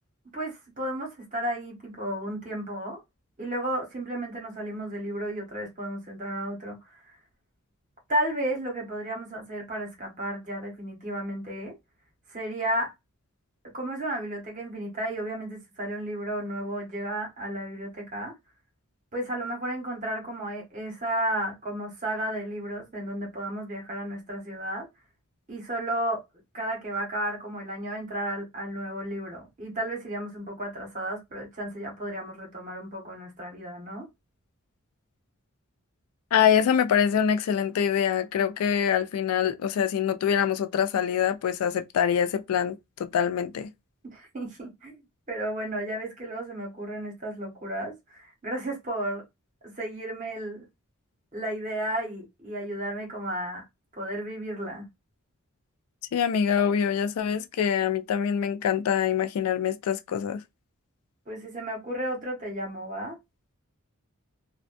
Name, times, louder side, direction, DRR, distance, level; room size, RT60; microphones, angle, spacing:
voice 1, 0.3-3.0 3.4-7.1 8.1-11.7 12.3-12.9 13.7-18.3 19.1-24.9 25.5-26.2 26.5-34.0 44.0-45.0 45.3-49.2 49.6-50.6 51.3-53.6 53.9-54.9 61.3-63.2, right 1 dB, 35° right, 1.1 m, -33 dB
voice 2, 36.3-43.7 56.1-60.4, left 8 dB, 85° left, 0.3 m, -25 dB
2.5 x 2.2 x 2.5 m
head